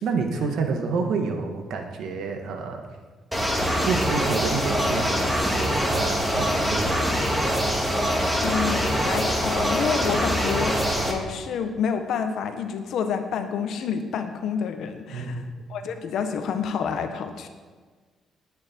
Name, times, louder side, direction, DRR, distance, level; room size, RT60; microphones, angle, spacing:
voice 1, 0.0-2.8 3.9-7.1 15.1-15.5, right 5 dB, 75° right, 4 dB, 1.9 m, -28 dB
sound 1, 3.3-11.1, equal, 5° right, 2.8 m, -24 dB
voice 2, 8.4-15.4 15.7-17.5, left 7 dB, 75° left, 7 dB, 1.4 m, -28 dB
20.0 x 9.4 x 4.7 m, 1.5 s
cardioid pair, 90°, 0 cm